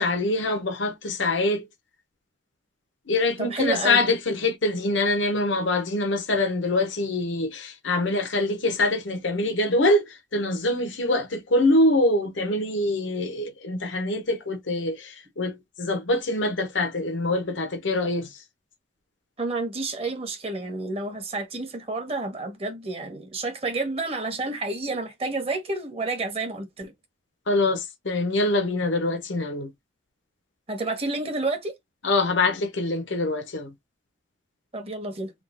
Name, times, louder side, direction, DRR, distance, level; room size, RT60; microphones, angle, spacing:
voice 1, 0.0-1.7 3.1-18.4 27.5-29.7 32.0-33.7, left 2 dB, 80° left, 0.9 m, -24 dB
voice 2, 3.4-4.0 19.4-26.9 30.7-31.7 34.7-35.3, right 2 dB, 30° right, 1.2 m, -30 dB
3.7 x 2.4 x 3.8 m
head